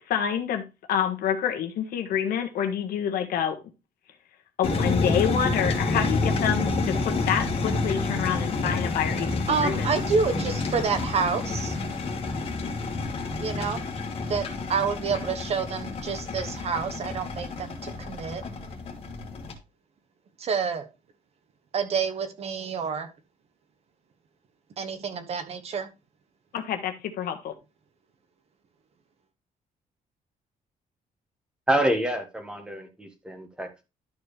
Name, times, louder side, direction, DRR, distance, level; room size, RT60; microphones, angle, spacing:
voice 1, 0.1-3.6 4.6-9.9 26.5-27.5, left 8 dB, 85° left, 1.5 m, -27 dB
sound 1, 4.6-19.5, left 3 dB, 40° left, 1.8 m, -29 dB
voice 2, 9.5-11.8 13.4-13.8 14.3-18.4 20.4-20.9 21.7-23.1 24.8-25.9, right 5 dB, 45° right, 1.1 m, -28 dB
voice 3, 31.7-33.8, right 1 dB, 5° right, 1.4 m, -27 dB
12.0 x 4.6 x 3.3 m
cardioid pair, 170°, 15 cm